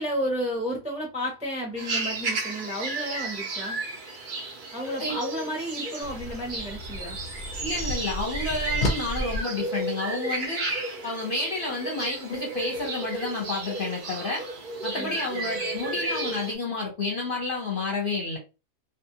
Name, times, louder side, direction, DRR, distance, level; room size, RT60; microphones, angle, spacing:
voice 1, 0.0-3.8 4.7-7.2 14.9-15.7, equal, 5° right, -1 dB, 0.5 m, -32 dB
sound 1, 1.8-16.5, right 3 dB, 70° right, 0.4 m, -33 dB
sound 2, 6.0-9.4, left 1 dB, 80° left, 0.4 m, -32 dB
voice 2, 7.6-10.8 11.0-14.4 14.8-18.4, left 3 dB, 45° left, -2 dB, 0.8 m, -30 dB
2.5 x 2.5 x 2.7 m, 0.29 s
omnidirectional pair, 1.5 m